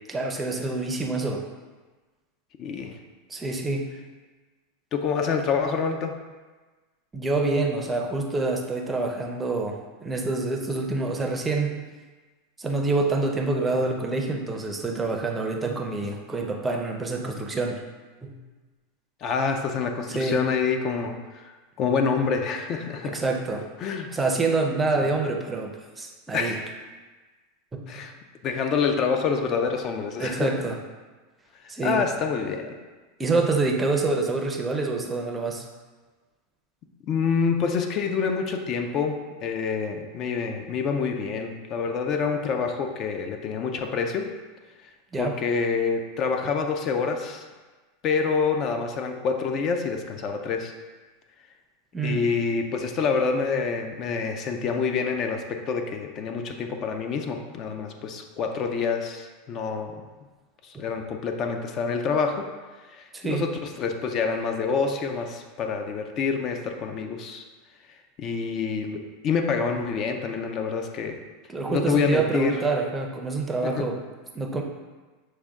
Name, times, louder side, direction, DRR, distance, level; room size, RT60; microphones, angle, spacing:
voice 1, 0.1-1.5 3.3-3.9 7.1-11.8 12.6-17.8 18.2-18.4 20.1-20.4 23.0-23.7 24.1-26.6 27.7-28.1 30.2-30.8 31.7-32.0 33.2-35.6 45.1-45.3 46.4-46.5 51.9-52.3 60.7-60.9 63.1-63.5 71.5-74.0 74.3-74.6, right 3 dB, 15° right, 2 dB, 0.5 m, -27 dB
voice 2, 2.6-3.0 4.9-6.2 19.2-21.4 21.8-23.2 23.8-24.1 25.0-25.1 26.3-26.7 27.9-28.1 28.4-30.5 31.8-32.8 37.1-44.3 45.2-47.5 48.0-50.7 52.0-60.0 60.6-62.5 62.9-67.4 68.2-71.2 71.7-72.6 73.6-73.9, left 5 dB, 40° left, 5 dB, 0.4 m, -27 dB
6.2 x 2.2 x 3.5 m, 1.3 s
supercardioid pair, 130°, 0 cm